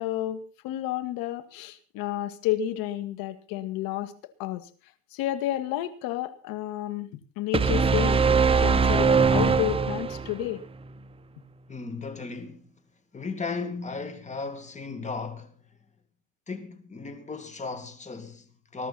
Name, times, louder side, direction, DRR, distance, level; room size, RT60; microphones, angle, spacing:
voice 1, 0.0-4.7 5.1-7.1 7.4-8.2 8.6-10.6, left 13 dB, 60° left, 2.1 m, -31 dB
sound 1, 7.5-10.5, right 5 dB, 15° right, 0.7 m, -21 dB
voice 2, 11.7-12.7 13.1-15.5 16.5-18.9, left 4 dB, 15° left, 2.4 m, -36 dB
21.5 x 12.0 x 4.2 m
supercardioid pair, 115°, 40 cm